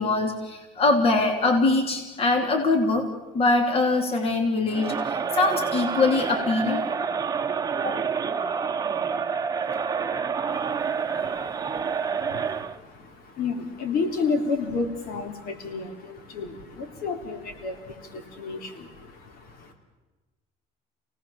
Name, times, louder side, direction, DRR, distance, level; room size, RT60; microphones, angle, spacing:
voice 1, 0.0-3.1 3.3-6.9 7.8-8.0, left 3 dB, 35° left, 4 dB, 3.1 m, -23 dB
Crowd, 4.7-12.8, right 6 dB, 20° right, 1.2 m, -28 dB
voice 2, 10.5-19.7, left 4 dB, 60° left, 5 dB, 3.6 m, -32 dB
28.5 x 18.5 x 7.2 m, 1.2 s
cardioid pair, 135°, 17 cm